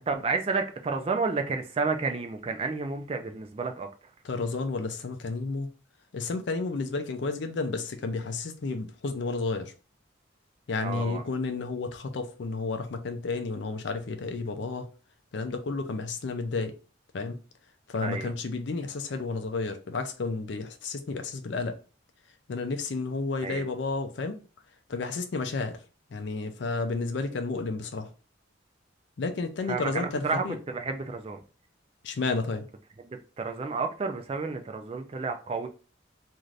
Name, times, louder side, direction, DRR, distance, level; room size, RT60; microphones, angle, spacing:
voice 1, 0.0-3.9 10.8-11.2 18.0-18.3 23.4-23.6 29.7-31.4 33.0-35.7, right 4 dB, 30° right, 0.3 m, -31 dB
voice 2, 4.2-5.7 6.1-9.7 10.7-14.9 15.3-16.7 17.1-17.4 17.9-21.7 22.5-24.4 24.9-25.8 26.1-28.1 29.2-30.6 32.0-32.6, left 3 dB, 65° left, 0.4 m, -31 dB
2.5 x 2.4 x 3.1 m
head